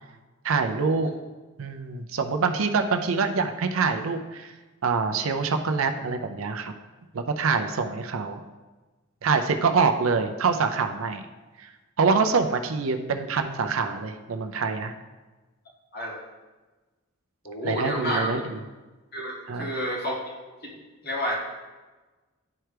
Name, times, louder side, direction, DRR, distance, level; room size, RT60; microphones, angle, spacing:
voice 1, 0.4-1.1 1.6-4.5 4.8-6.7 7.1-8.4 9.2-11.3 11.6-11.7 12.0-14.9 17.6-18.6 19.5-19.7, right 4 dB, 90° right, 6 dB, 0.5 m, -25 dB
voice 2, 17.4-18.3 19.1-20.1 20.6-21.4, equal, 50° left, -3 dB, 1.8 m, -30 dB
10.5 x 4.5 x 3.3 m, 1.2 s
head